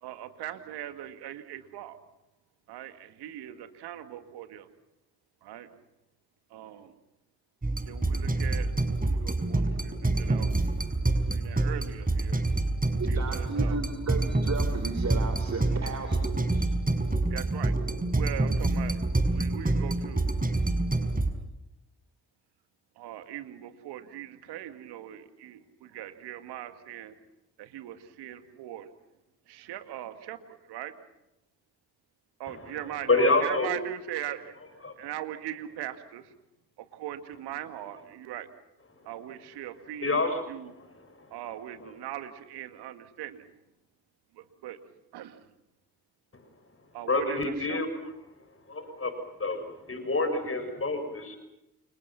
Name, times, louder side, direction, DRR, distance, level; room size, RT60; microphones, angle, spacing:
voice 1, 0.0-2.0 2.7-4.7 5.4-5.7 6.5-6.9 7.8-8.7 9.0-10.5 11.3-12.4 13.1-13.8 17.3-17.8 18.1-20.3 23.0-27.2 27.6-28.9 29.5-30.9 32.4-34.5 35.0-36.3 36.8-38.5 39.1-40.7 41.3-43.5 44.3-44.8 45.1-45.5 46.9-47.8, right 12 dB, 75° right, 9 dB, 2.2 m, -40 dB
sound 1, 7.6-21.3, right 2 dB, 20° right, 6.3 m, -27 dB
voice 2, 13.0-16.6, right 4 dB, 40° right, 6 dB, 4.4 m, -35 dB
voice 3, 33.1-33.8 34.8-34.9 40.0-40.7 41.2-41.3 47.1-47.9 48.7-49.1 49.4-51.4, left 2 dB, 35° left, 8 dB, 6.9 m, -27 dB
29.5 x 27.0 x 6.0 m, 0.89 s
hypercardioid pair, 40°, 40 cm